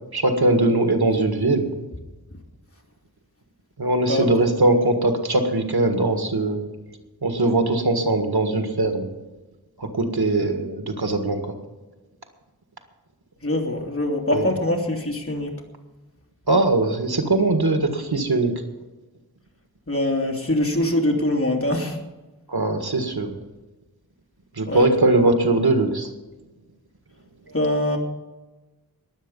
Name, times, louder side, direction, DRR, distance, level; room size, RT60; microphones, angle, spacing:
voice 1, 0.1-1.7 3.8-6.7 7.2-9.1 9.8-11.6 14.3-14.5 16.5-18.5 22.5-23.3 24.6-26.1 27.5-27.6, right 2 dB, 90° right, 5 dB, 1.8 m, -21 dB
voice 2, 13.4-15.5 19.9-22.0 24.7-24.8 27.5-28.0, left 1 dB, 35° left, 1 dB, 2.9 m, -23 dB
20.5 x 8.3 x 5.5 m, 1.1 s
wide cardioid pair, 45°, 37 cm